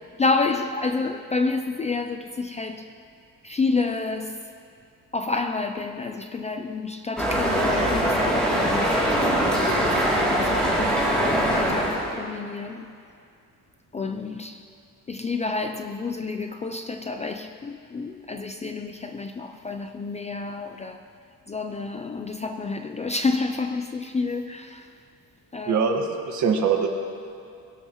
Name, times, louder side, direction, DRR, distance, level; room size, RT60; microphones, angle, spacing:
voice 1, 0.2-2.9 3.4-4.4 5.1-12.9 13.9-14.6 15.1-21.0 21.5-24.9 25.5-26.1, left 3 dB, 20° left, 6 dB, 0.4 m, -29 dB
sound 1, 7.2-12.2, equal, ahead, 2.9 m, -22 dB
voice 2, 25.7-26.9, right 6 dB, 55° right, 3 dB, 1.6 m, -23 dB
22.0 x 17.5 x 3.1 m, 2.4 s
cardioid pair, 175°, 35 cm